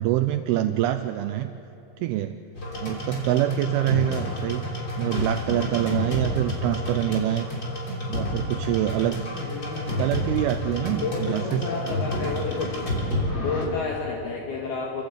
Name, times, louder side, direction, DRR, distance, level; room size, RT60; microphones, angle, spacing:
voice 1, 0.0-1.5 2.0-2.4 2.8-4.6 5.0-7.5 8.1-9.3 10.0-11.7, right 13 dB, 85° right, 8 dB, 2.2 m, -25 dB
sound 1, 2.6-13.6, left 1 dB, 30° left, 3.5 m, -30 dB
voice 2, 9.4-10.0 11.0-12.8 13.4-15.0, left 4 dB, 65° left, -2 dB, 3.5 m, -30 dB
30.0 x 14.5 x 8.2 m, 2.9 s
omnidirectional pair, 5.2 m